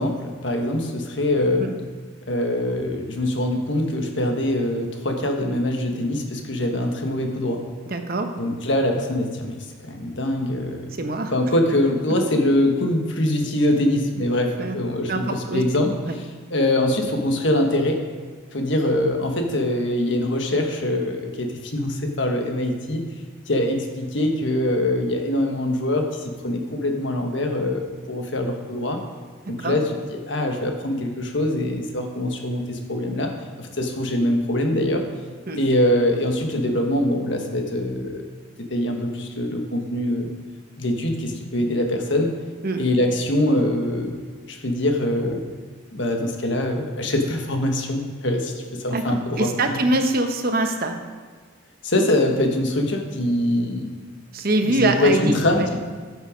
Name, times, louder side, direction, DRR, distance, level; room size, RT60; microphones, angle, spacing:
voice 1, 0.0-1.7 2.3-7.6 8.4-10.9 11.3-16.2 16.5-18.0 18.5-23.0 23.5-29.0 29.5-29.8 30.1-33.3 33.6-35.0 35.6-38.2 38.5-40.3 40.8-42.3 42.8-44.2 44.5-45.4 45.9-49.8 51.8-53.9 54.6-55.8, left 1 dB, 65° left, 3 dB, 1.4 m, -23 dB
voice 2, 7.9-8.3 11.0-11.3 14.6-14.8 15.1-15.6 16.1-16.2 29.6-29.8 35.5-35.6 42.6-42.8 48.9-51.0 54.3-55.8, right 2 dB, 50° right, 6 dB, 0.9 m, -24 dB
13.0 x 6.5 x 5.1 m, 1.5 s
head